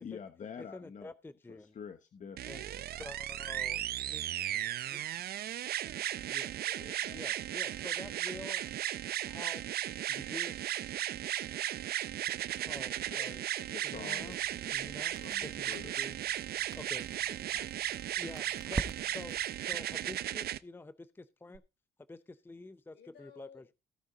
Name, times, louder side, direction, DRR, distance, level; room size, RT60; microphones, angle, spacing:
voice 1, 0.0-1.1 1.5-2.8 13.2-14.7 15.2-15.9, left 7 dB, 45° left, 1.1 m, -47 dB
voice 2, 0.6-1.7 2.5-3.8 4.1-4.2 4.9-5.0 6.3-6.5 7.1-8.6 9.3-9.6 10.1-10.5 12.6-13.4 13.8-14.4 14.7-15.1 15.4-16.1 16.7-17.7 18.2-21.6 22.1-23.6, left 2 dB, 10° left, 0.6 m, -48 dB
sound 1, 2.4-20.6 21.6-21.7, right 12 dB, 60° right, 0.6 m, -36 dB
voice 3, 6.6-8.4 14.1-15.1 22.9-23.7, left 7 dB, 70° left, 3.7 m, -58 dB
Crackle, 14.2-19.5, right 4 dB, 20° right, 0.8 m, -45 dB
16.0 x 6.3 x 3.9 m
cardioid pair, 90°, 18 cm